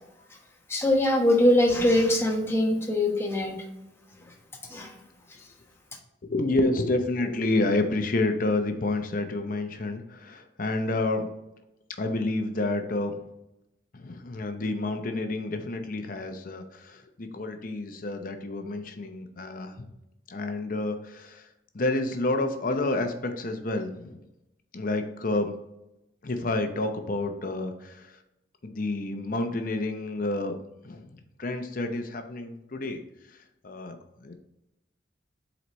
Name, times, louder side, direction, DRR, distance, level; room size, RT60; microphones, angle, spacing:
voice 1, 0.7-3.6 4.7-5.0, left 1 dB, 15° left, 0 dB, 1.0 m, -22 dB
voice 2, 6.2-11.3 12.0-13.2 13.9-19.8 20.3-21.5 21.7-24.2 24.7-25.5 26.2-28.2 28.6-30.5 30.8-33.0 33.6-34.0 34.2-34.3, left 2 dB, 50° left, 6 dB, 0.7 m, -29 dB
7.7 x 4.1 x 3.1 m, 0.91 s
head